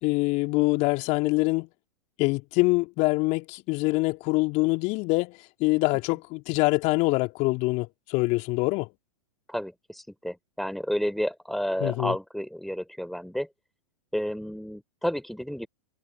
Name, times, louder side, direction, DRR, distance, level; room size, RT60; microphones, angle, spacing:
voice 1, 0.0-1.7 2.2-8.9 11.8-12.2, left 24 dB, 45° left, 2.8 m, -25 dB
voice 2, 9.5-13.5 14.1-15.7, equal, ahead, 4.2 m, -31 dB
figure-of-eight pair, 100°, 17 cm